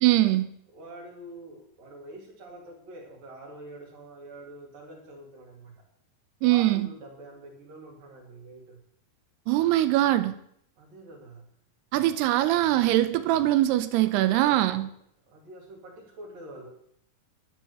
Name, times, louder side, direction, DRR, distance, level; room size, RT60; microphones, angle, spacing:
voice 1, 0.0-0.5 6.4-6.9 9.5-10.3 11.9-14.9, right 15 dB, 85° right, 2.8 m, -22 dB
voice 2, 0.7-5.8 6.4-8.8 10.8-11.5 14.0-14.9 15.3-16.7, right 2 dB, 60° right, 4.1 m, -45 dB
12.0 x 9.4 x 7.0 m
omnidirectional pair, 4.8 m